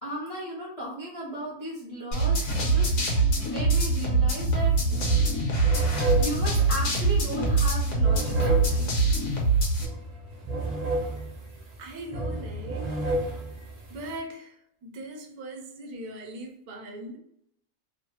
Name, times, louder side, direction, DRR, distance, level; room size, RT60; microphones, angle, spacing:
voice 1, 0.0-2.9 3.4-4.7 6.2-9.1, right 1 dB, 45° left, -5 dB, 0.4 m, -36 dB
sound 1, 2.1-9.9, right 3 dB, 65° left, 1.2 m, -24 dB
sound 2, 4.5-4.7 4.9-14.2, right 1 dB, 50° right, 0.5 m, -32 dB
voice 2, 11.8-12.9 13.9-14.6 14.8-17.2, right 1 dB, 75° right, 4 dB, 1.1 m, -40 dB
2.8 x 2.1 x 2.9 m, 0.73 s
omnidirectional pair, 1.6 m